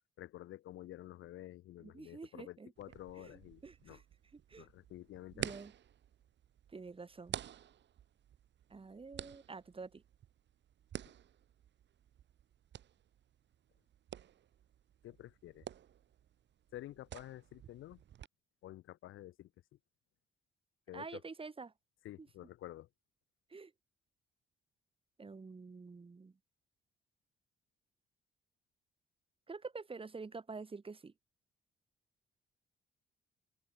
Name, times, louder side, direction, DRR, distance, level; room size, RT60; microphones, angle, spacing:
voice 1, 0.2-4.0 4.6-5.6 15.0-15.7 16.7-18.0 18.6-19.8 20.9-21.2 22.0-22.9, left 14 dB, 85° left, 4.0 m, -50 dB
voice 2, 1.8-2.7 3.2-4.0 4.5-4.7 5.3-5.7 6.7-7.4 8.7-10.0 20.9-21.7 22.2-22.3 23.5-23.7 25.2-26.4 29.5-31.1, right 4 dB, 25° right, 3.0 m, -48 dB
sound 1, 2.8-18.3, right 10 dB, 65° right, 1.9 m, -50 dB
open air
cardioid pair, 90°, 20 cm